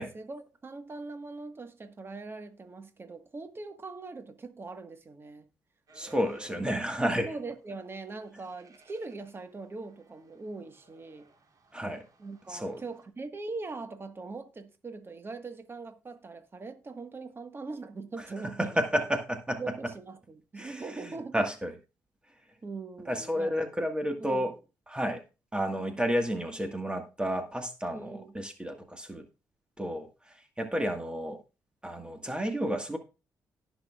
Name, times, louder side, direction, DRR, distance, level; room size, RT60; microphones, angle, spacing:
voice 1, 0.1-5.5 7.2-11.3 12.2-18.8 19.6-21.5 22.6-23.5 24.2-24.6 27.9-28.3 30.8-31.0, right 3 dB, 35° right, 1.5 m, -41 dB
voice 2, 5.9-7.3 11.7-12.0 12.5-12.8 18.6-19.6 20.6-20.8 21.3-21.7 23.1-24.5 24.9-25.2 25.5-29.2 29.8-31.4 31.8-33.0, equal, 15° right, 1.6 m, -31 dB
sound 1, 5.9-7.1 8.2-13.1, right 3 dB, 60° right, 2.7 m, -58 dB
18.0 x 6.1 x 2.4 m
supercardioid pair, 65°, 7 cm